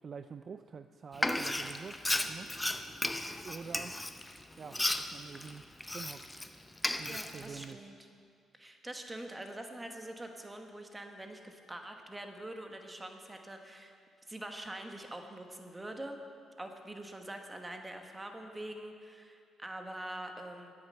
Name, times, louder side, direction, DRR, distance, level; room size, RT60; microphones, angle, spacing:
voice 1, 0.0-2.6 3.4-4.0 4.6-4.8 5.1-5.6 5.9-6.3 7.0-7.9, right 6 dB, 45° right, 10 dB, 0.3 m, -46 dB
Frying (food), 1.1-6.5 6.8-7.7, left 1 dB, 10° left, 0.6 m, -34 dB
voice 2, 7.1-7.9 8.5-13.9 14.3-16.2 16.6-20.7, right 1 dB, 15° right, 4 dB, 1.2 m, -44 dB
9.7 x 8.9 x 6.6 m, 2.2 s
cardioid pair, 90°, 0 cm